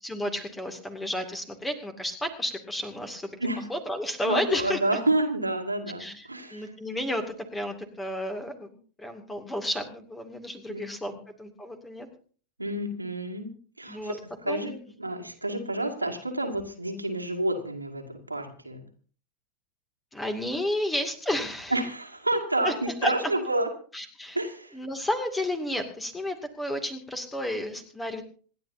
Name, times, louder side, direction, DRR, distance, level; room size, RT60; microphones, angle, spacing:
voice 1, 0.0-3.3 3.7-4.8 6.0-11.1 11.4-12.1 13.9-14.2 14.5-14.7 20.1-21.7 22.6-22.7 23.0-23.1 23.9-24.4 24.7-28.2, left 1 dB, 10° left, 7 dB, 2.4 m, -32 dB
voice 2, 4.2-6.7 10.7-11.2 12.6-18.8 21.7-23.7 24.3-24.8, right 2 dB, 85° right, 2 dB, 2.3 m, -29 dB
26.5 x 11.0 x 2.8 m, 0.43 s
figure-of-eight pair, 90°, 0 cm